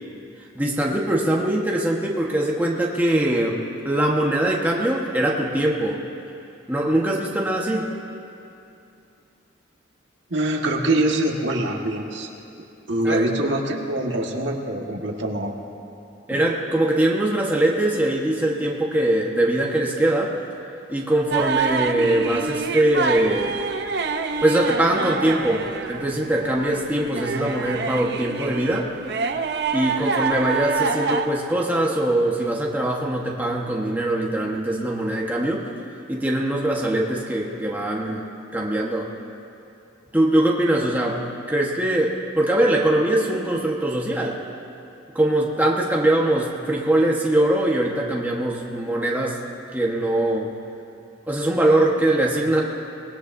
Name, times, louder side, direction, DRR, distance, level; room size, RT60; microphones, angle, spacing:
voice 1, 0.5-3.6 3.8-6.0 6.7-7.9 13.0-13.2 16.3-20.4 20.9-23.6 24.4-28.9 29.7-35.7 36.1-38.2 38.5-39.1 40.1-41.2 41.5-44.4 45.1-49.4 49.7-50.5 51.3-52.6, right 1 dB, 10° right, -3 dB, 1.3 m, -22 dB
voice 2, 10.3-12.3 12.9-15.5 16.3-16.4, right 1 dB, 75° right, 0 dB, 1.7 m, -24 dB
sound 1, 21.3-31.3, right 5 dB, 60° right, 0.7 m, -27 dB
25.0 x 20.0 x 2.7 m, 2.7 s
head